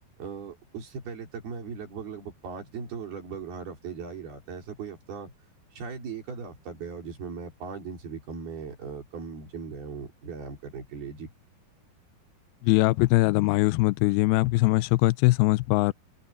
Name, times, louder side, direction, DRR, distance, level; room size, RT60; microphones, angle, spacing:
voice 1, 0.2-5.3 5.7-11.3, right 5 dB, 90° right, 6.5 m, -38 dB
voice 2, 12.6-15.9, left 22 dB, 90° left, 2.5 m, -21 dB
omnidirectional pair, 4.3 m